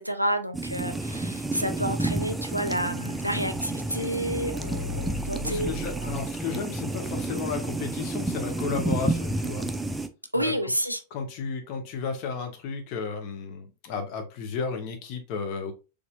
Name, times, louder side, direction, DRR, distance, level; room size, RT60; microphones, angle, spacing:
voice 1, 0.0-5.7 6.0-6.1 10.3-11.0, equal, 90° right, 9 dB, 0.5 m, -30 dB
sound 1, 0.5-10.1, right 2 dB, 5° right, 0.4 m, -30 dB
sound 2, 3.5-6.7, equal, 40° right, 1.1 m, -38 dB
voice 2, 5.3-9.6 10.3-10.5 11.1-15.7, left 5 dB, 40° left, 5 dB, 1.0 m, -33 dB
4.2 x 3.3 x 2.3 m, 0.31 s
figure-of-eight pair, 90°, 0 cm